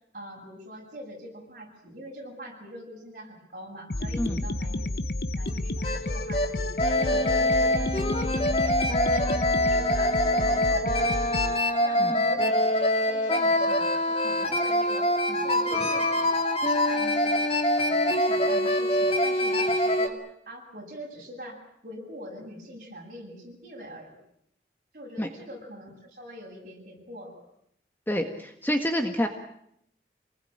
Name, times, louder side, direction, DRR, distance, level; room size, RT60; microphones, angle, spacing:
voice 1, 0.1-4.9 5.4-8.8 9.1-11.2 11.8-16.3 16.7-17.5 17.8-24.1 24.9-27.4, equal, 45° right, -1 dB, 8.0 m, -43 dB
sound 1, 3.9-11.6, left 1 dB, 55° left, 1.0 m, -31 dB
sound 2, 5.5-5.6 5.8-6.0 6.3-6.5 6.8-20.1, left 1 dB, 35° left, 2.5 m, -24 dB
voice 2, 28.1-29.3, equal, 10° left, 5 dB, 1.7 m, -27 dB
26.5 x 20.0 x 8.9 m, 0.76 s
head